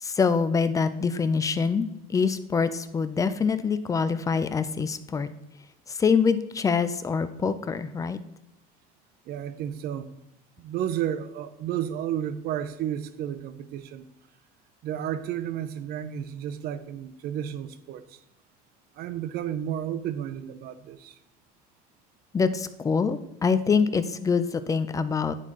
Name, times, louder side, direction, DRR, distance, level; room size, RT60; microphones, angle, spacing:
voice 1, 0.0-5.3 5.9-8.2 22.3-25.3, left 5 dB, 15° left, 12 dB, 0.4 m, -25 dB
voice 2, 9.3-10.1 10.6-14.0 14.8-18.2 18.9-21.2, right 10 dB, 50° right, 12 dB, 0.6 m, -32 dB
9.8 x 4.2 x 3.0 m, 0.87 s
supercardioid pair, 110°, 21 cm